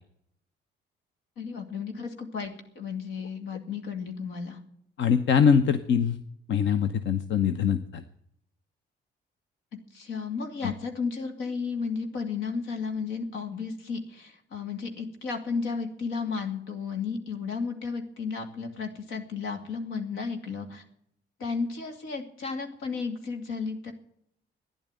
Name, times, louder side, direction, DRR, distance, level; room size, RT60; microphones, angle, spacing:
voice 1, 1.4-4.6 9.9-20.8 21.4-23.9, left 5 dB, 90° left, 5 dB, 2.7 m, -33 dB
voice 2, 5.0-6.2 6.5-8.0 10.6-10.7, left 7 dB, 70° left, 10 dB, 0.9 m, -23 dB
12.5 x 10.5 x 9.0 m, 0.71 s
cardioid pair, 90°, 20 cm